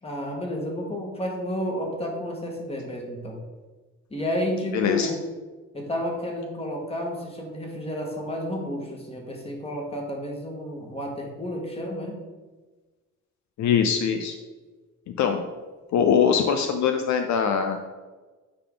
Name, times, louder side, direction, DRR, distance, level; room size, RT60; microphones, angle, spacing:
voice 1, 0.0-3.4 4.1-5.2 5.7-12.2, equal, 20° left, 0 dB, 1.9 m, -31 dB
voice 2, 4.7-5.1 13.6-14.4 15.2-15.4 15.9-17.9, left 7 dB, 70° left, 6 dB, 0.6 m, -22 dB
9.6 x 3.9 x 3.9 m, 1.3 s
cardioid pair, 90°, 30 cm